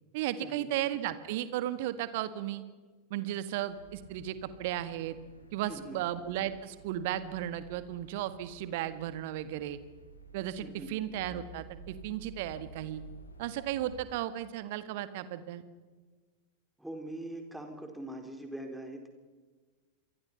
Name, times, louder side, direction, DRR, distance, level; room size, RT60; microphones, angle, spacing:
voice 1, 0.1-2.6 3.1-5.2 5.5-9.8 10.3-13.0 13.4-15.6, right 12 dB, 50° right, 12 dB, 1.7 m, -35 dB
sound 1, 3.7-14.0, right 1 dB, 80° left, 3.5 m, -53 dB
voice 2, 5.7-6.0 10.6-10.9 16.8-19.1, right 1 dB, 5° right, 4 dB, 4.1 m, -42 dB
28.0 x 23.0 x 5.7 m, 1.4 s
figure-of-eight pair, 90°, 0 cm